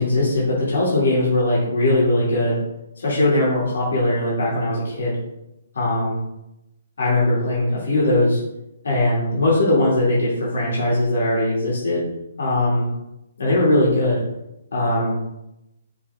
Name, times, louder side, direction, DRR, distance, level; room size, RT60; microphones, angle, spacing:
voice 1, 0.0-2.6 3.0-5.2 5.7-6.2 7.0-8.4 8.8-12.1 12.4-12.9 13.4-14.2 14.7-15.2, left 1 dB, 75° left, -6 dB, 2.2 m, -20 dB
7.4 x 3.7 x 3.5 m, 0.90 s
hypercardioid pair, 165°, 0 cm